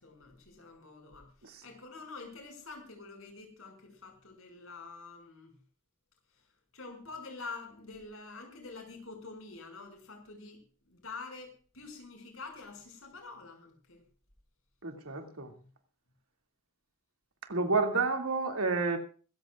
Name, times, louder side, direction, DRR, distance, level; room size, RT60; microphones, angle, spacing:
voice 1, 0.0-5.5 6.3-6.5 6.7-14.0 15.6-15.7, left 3 dB, 70° left, 6.2 m, -47 dB
voice 2, 14.8-15.5 17.4-19.0, right 3 dB, 85° right, 2.5 m, -30 dB
24.5 x 14.5 x 2.5 m
head